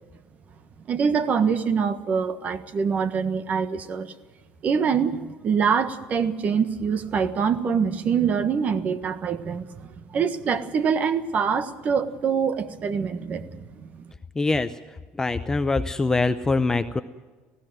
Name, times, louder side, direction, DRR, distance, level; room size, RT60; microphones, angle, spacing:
voice 1, 0.9-4.1 4.6-14.0, right 6 dB, 40° right, 12 dB, 1.4 m, -25 dB
voice 2, 14.4-14.7 15.2-17.0, left 3 dB, 15° left, 10 dB, 0.6 m, -23 dB
19.5 x 15.5 x 9.2 m, 1.4 s
cardioid pair, 130°, 4 cm